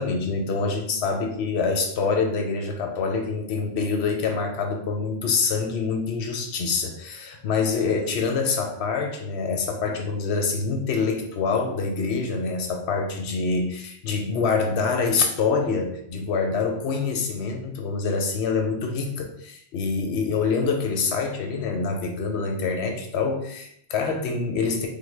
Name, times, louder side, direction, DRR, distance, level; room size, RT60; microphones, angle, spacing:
voice 1, 0.0-24.9, left 4 dB, 70° left, 3 dB, 0.8 m, -26 dB
3.3 x 2.1 x 3.2 m, 0.68 s
omnidirectional pair, 1.3 m